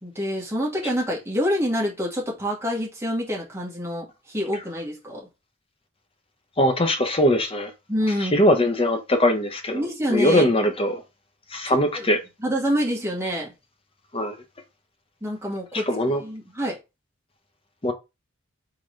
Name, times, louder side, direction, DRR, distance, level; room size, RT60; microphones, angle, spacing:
voice 1, 0.0-5.3 7.9-8.4 9.7-10.5 11.7-12.1 12.4-13.5 15.2-16.8, equal, 10° right, 1.7 m, -27 dB
voice 2, 6.6-7.7 8.3-9.8 10.1-11.0 11.5-12.2 14.1-14.4 15.9-16.2 17.8-17.9, left 1 dB, 25° left, 0.8 m, -21 dB
3.9 x 3.9 x 3.2 m
head